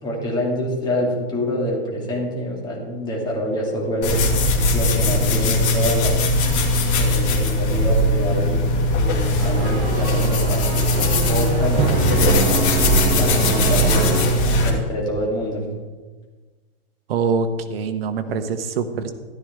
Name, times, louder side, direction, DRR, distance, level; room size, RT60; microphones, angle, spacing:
voice 1, 0.0-6.1 7.0-12.4 13.1-14.2 14.6-15.6, equal, 15° left, -3 dB, 2.4 m, -26 dB
sound 1, 4.0-14.7, left 1 dB, 30° left, 2.4 m, -19 dB
sound 2, 9.4-15.0, right 4 dB, 20° right, 0.8 m, -25 dB
voice 2, 17.1-19.1, right 5 dB, 65° right, 9 dB, 1.1 m, -24 dB
13.5 x 12.0 x 3.6 m, 1.3 s
supercardioid pair, 165°, 32 cm